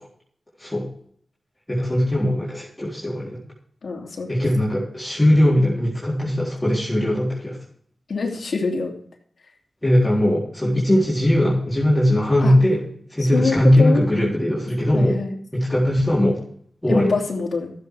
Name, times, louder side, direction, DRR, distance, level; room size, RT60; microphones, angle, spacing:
voice 1, 1.7-3.4 4.3-7.6 9.8-15.2 15.5-16.4 16.8-17.1, left 1 dB, 15° left, -7 dB, 3.9 m, -19 dB
voice 2, 3.8-4.3 8.1-8.9 12.4-12.5 13.3-14.0 14.9-15.3 16.9-17.7, left 4 dB, 75° left, 0 dB, 2.9 m, -24 dB
14.0 x 8.1 x 4.8 m, 0.62 s
wide cardioid pair, 70°, 0 cm